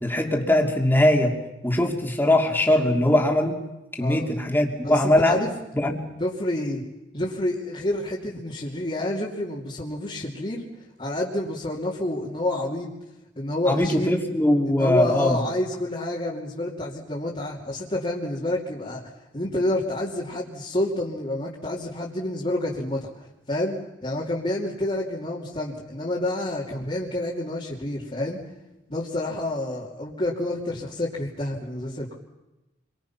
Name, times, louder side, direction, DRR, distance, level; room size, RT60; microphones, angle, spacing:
voice 1, 0.0-1.3 1.6-3.6 4.0-5.4 5.7-6.0 13.7-15.4, left 1 dB, 10° left, 2 dB, 2.8 m, -21 dB
voice 2, 4.0-4.3 4.8-5.5 6.2-6.8 7.1-10.6 11.0-12.9 13.4-14.2 14.8-19.0 19.3-23.1 23.5-28.4 28.9-32.1, left 1 dB, 30° left, -4 dB, 2.8 m, -28 dB
28.5 x 24.0 x 5.9 m, 1.0 s
head